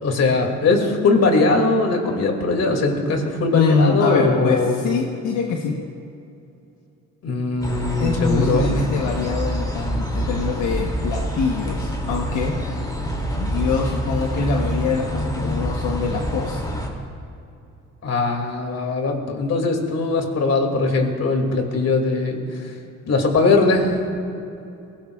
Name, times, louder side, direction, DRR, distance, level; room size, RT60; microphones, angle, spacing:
voice 1, 0.0-4.8 7.2-8.8 18.0-22.7 23.1-24.0, left 3 dB, 55° left, 3 dB, 2.5 m, -20 dB
voice 2, 3.5-5.8 8.0-12.5 13.4-16.8, left 5 dB, 85° left, 1 dB, 1.1 m, -24 dB
sound 1, 7.6-16.9, equal, 15° left, 2.6 m, -26 dB
22.5 x 17.5 x 2.4 m, 2.6 s
cardioid pair, 90°, 30 cm